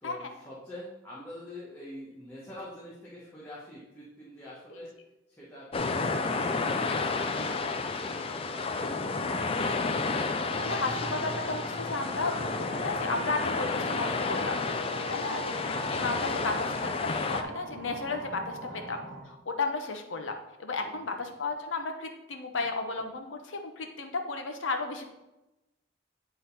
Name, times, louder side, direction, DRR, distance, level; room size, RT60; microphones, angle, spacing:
voice 1, 0.0-4.9 5.3-6.4 6.7-9.1 18.6-18.9 20.7-21.3, left 1 dB, 10° left, -8 dB, 1.4 m, -46 dB
sound 1, 5.7-17.4, left 3 dB, 30° left, 0.4 m, -31 dB
sound 2, 10.5-19.2, right 2 dB, 65° right, 2.0 m, -41 dB
voice 2, 10.6-12.4 12.6-14.6 15.1-19.0 19.3-25.0, left 3 dB, 85° left, 5 dB, 0.9 m, -34 dB
9.2 x 3.9 x 4.1 m, 0.97 s
head